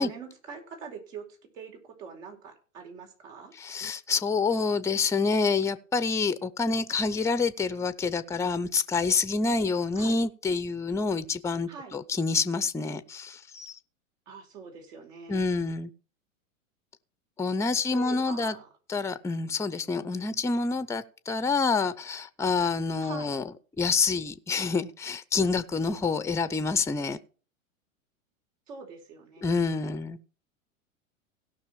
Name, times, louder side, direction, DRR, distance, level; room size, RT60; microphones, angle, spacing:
voice 1, 0.0-3.5 10.0-10.2 11.7-12.0 14.3-15.5 17.9-18.7 23.0-23.3 28.7-29.6, right 5 dB, 70° right, 4.8 m, -43 dB
voice 2, 3.6-13.7 15.3-15.9 17.4-18.5 18.9-23.4 23.8-27.2 29.4-30.2, left 4 dB, 5° left, 0.6 m, -27 dB
17.0 x 6.1 x 4.7 m
hypercardioid pair, 100°, 40 cm